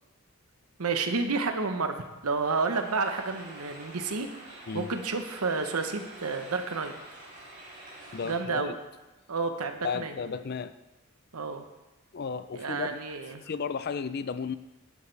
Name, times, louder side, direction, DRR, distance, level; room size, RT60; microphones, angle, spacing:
voice 1, 0.8-1.9 2.2-6.9 8.2-8.7 9.3-10.1 11.3-11.7 12.5-13.4, right 4 dB, 80° right, 7 dB, 1.0 m, -30 dB
sound 1, 2.3-8.4, right 1 dB, 40° right, 3.8 m, -47 dB
voice 2, 8.1-8.8 9.8-10.7 12.1-13.0 13.4-14.6, left 5 dB, 45° left, 13 dB, 0.4 m, -34 dB
11.5 x 10.0 x 3.4 m, 1.1 s
head